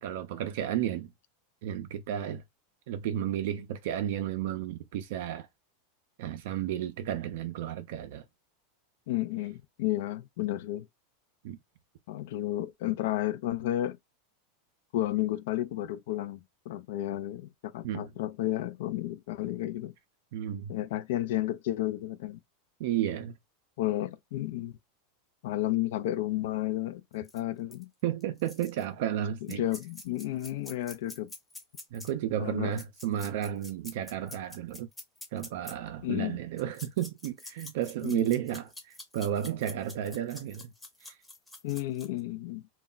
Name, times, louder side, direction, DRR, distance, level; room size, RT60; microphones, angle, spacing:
voice 1, 0.0-1.1 1.6-2.4 2.9-5.5 6.2-8.2 11.4-11.6 17.8-18.1 20.3-20.8 22.8-23.3 28.0-29.6 31.9-34.9 35.3-40.7 41.0-41.2, right 11 dB, 70° right, 0.4 m, -32 dB
voice 2, 9.1-10.9 12.1-14.0 14.9-19.9 20.7-22.4 23.8-24.7 25.4-27.9 29.4-31.3 32.4-32.7 36.0-36.4 38.0-38.3 41.6-42.6, left 14 dB, 70° left, 0.4 m, -32 dB
sound 1, 27.2-27.4 27.7-27.8 28.2-28.9 29.5-32.1 32.7-35.7 36.6-42.2, left 2 dB, 5° left, 0.7 m, -47 dB
2.2 x 2.1 x 3.7 m
supercardioid pair, 130°, 0 cm